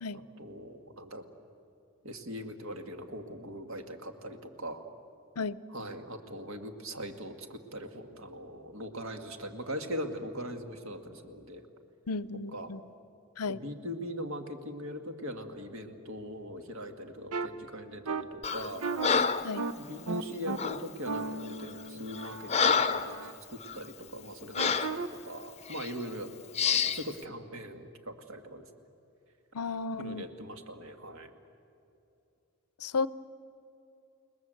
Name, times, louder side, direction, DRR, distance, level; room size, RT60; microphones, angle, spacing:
voice 1, 0.1-1.2 2.0-4.8 5.7-11.6 12.5-12.7 13.5-18.8 19.8-26.3 26.6-28.7 30.0-31.3, equal, 65° right, 6 dB, 2.0 m, -41 dB
voice 2, 12.1-12.8 13.4-13.6 19.4-19.6 29.5-30.2 32.8-33.1, left 4 dB, 85° left, 17 dB, 0.7 m, -33 dB
sound 1, 17.3-17.5 18.1-18.2 18.8-19.1 19.6-19.7 20.1-20.6 21.1-23.3 24.6-25.1, right 3 dB, 85° right, 1.1 m, -35 dB
Breathing, 18.4-18.7 19.0-19.5 20.6-20.8 21.5-21.7 22.1-23.1 23.6-23.8 24.6-25.0 25.7-25.9 26.6-27.0, left 6 dB, 30° left, 0.7 m, -28 dB
30.0 x 20.0 x 7.8 m, 2.6 s
head